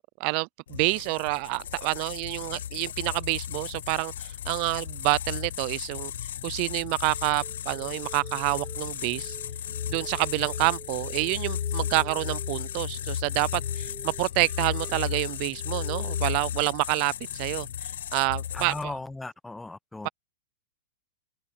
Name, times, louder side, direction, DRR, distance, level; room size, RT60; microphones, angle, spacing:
voice 1, 0.2-6.1 6.4-9.4 9.9-18.9, right 30 dB, 50° right, 0.4 m, -28 dB
sound 1, 0.7-19.0, left 10 dB, 75° left, 0.7 m, -34 dB
sound 2, 7.1-16.3, right 7 dB, 20° right, 0.8 m, -47 dB
voice 2, 18.5-20.1, left 2 dB, 5° left, 1.0 m, -37 dB
open air
hypercardioid pair, 125°, 0 cm